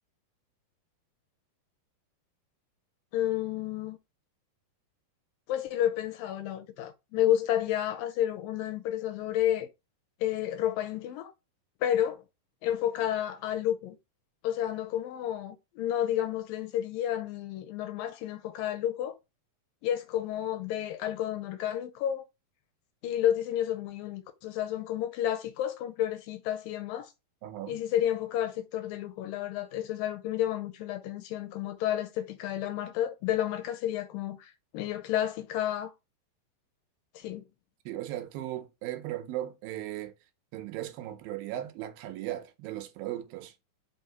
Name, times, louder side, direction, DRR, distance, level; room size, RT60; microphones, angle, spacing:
voice 1, 3.1-4.0 5.5-9.7 10.2-11.3 11.8-12.2 12.6-14.0 14.4-19.2 19.8-22.2 23.0-27.1 27.7-35.9 37.2-37.4, left 11 dB, 80° left, 2.3 m, -31 dB
voice 2, 27.4-27.8 37.9-40.1 40.5-43.5, right 13 dB, 80° right, 2.4 m, -37 dB
5.5 x 3.5 x 5.6 m
omnidirectional pair, 4.4 m